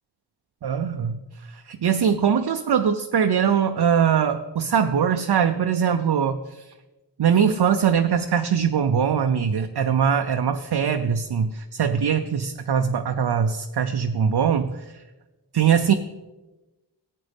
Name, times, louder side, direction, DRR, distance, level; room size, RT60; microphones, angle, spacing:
voice 1, 0.6-1.2 1.5-6.7 7.2-14.8 15.5-15.9, right 7 dB, 65° right, 6 dB, 0.6 m, -22 dB
14.0 x 8.4 x 3.4 m, 1.1 s
wide cardioid pair, 65°, 42 cm